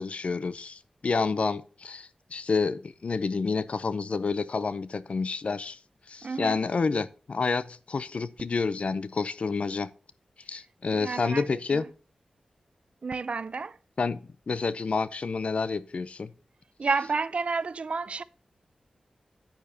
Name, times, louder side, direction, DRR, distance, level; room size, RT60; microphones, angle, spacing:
voice 1, 0.0-5.8 6.1-9.9 10.5-11.8 14.0-16.3, left 4 dB, 60° left, 0.6 m, -29 dB
voice 2, 6.2-6.6 10.9-11.4 11.7-11.8 13.0-13.8 16.8-18.2, right 4 dB, 60° right, 0.5 m, -30 dB
9.5 x 9.3 x 2.8 m
wide cardioid pair, 65°, 2 cm